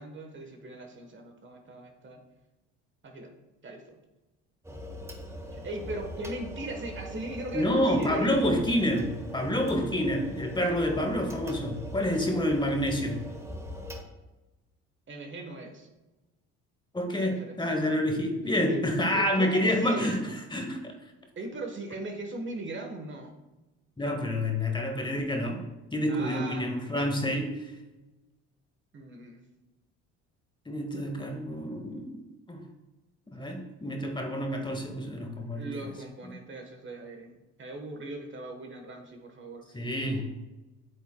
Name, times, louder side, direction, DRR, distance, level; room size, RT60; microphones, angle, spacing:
voice 1, 0.0-2.2 3.0-3.3 3.6-4.0 5.5-8.3 10.7-10.8 12.1-12.4 15.1-15.9 17.2-17.7 18.5-18.8 19.1-20.1 21.4-23.3 26.1-26.7 28.9-29.4 35.5-39.9, right 2 dB, 35° right, 3 dB, 1.2 m, -39 dB
sound 1, 4.6-14.0, equal, 10° right, 1.1 m, -41 dB
voice 2, 7.5-13.2 16.9-20.2 20.5-20.9 24.0-25.6 25.9-27.7 30.7-32.2 32.5-32.6 33.3-35.7 39.7-40.2, left 1 dB, 15° left, 3 dB, 1.4 m, -28 dB
8.5 x 7.1 x 2.2 m, 1.1 s
supercardioid pair, 85°, 32 cm